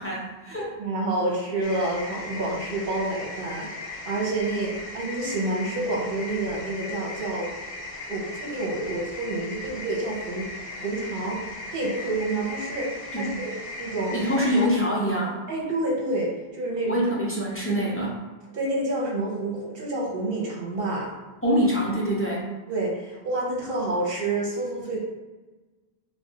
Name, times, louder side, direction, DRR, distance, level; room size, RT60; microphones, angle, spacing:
voice 1, 0.0-0.7 13.1-13.4 14.1-15.4 16.9-18.2 21.4-22.5, equal, 20° left, -6 dB, 0.4 m, -25 dB
voice 2, 0.8-7.5 8.1-11.4 11.7-14.2 15.5-17.0 18.5-21.1 22.7-25.0, right 2 dB, 65° right, -3 dB, 1.0 m, -28 dB
sound 1, 1.6-14.7, left 2 dB, 70° left, 0.8 m, -38 dB
2.4 x 2.1 x 3.7 m, 1.2 s
omnidirectional pair, 1.0 m